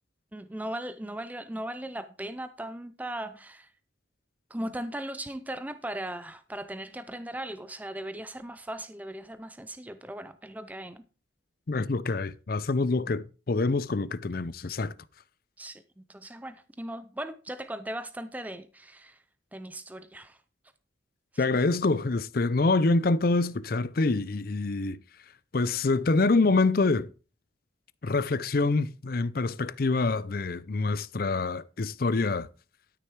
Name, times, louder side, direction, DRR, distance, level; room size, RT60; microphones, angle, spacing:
voice 1, 0.3-3.7 4.5-11.0 15.6-19.2 19.5-20.4 21.3-21.6, right 1 dB, 10° right, 0.4 m, -38 dB
voice 2, 11.7-14.9 21.4-25.0 25.5-27.1 28.0-32.5, left 3 dB, 50° left, 0.5 m, -26 dB
12.5 x 6.6 x 4.6 m
head